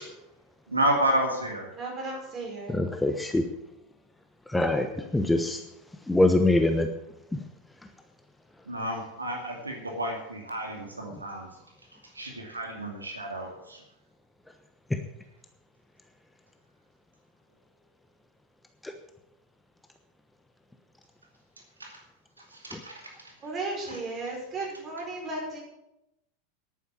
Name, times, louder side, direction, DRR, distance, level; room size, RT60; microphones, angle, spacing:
voice 1, 0.7-1.7 8.7-11.5 12.1-13.8 21.8-22.0 22.5-23.0, right 1 dB, 85° right, 1 dB, 2.3 m, -30 dB
voice 2, 1.7-2.8 23.4-25.6, right 2 dB, 30° right, -1 dB, 5.7 m, -35 dB
voice 3, 2.7-3.4 4.5-5.6 6.1-6.9 7.3-7.4 14.9-15.0 18.8-18.9 22.7-22.8, left 2 dB, 5° left, 6 dB, 1.0 m, -24 dB
10.5 x 9.4 x 7.5 m, 0.89 s
figure-of-eight pair, 85°, 0 cm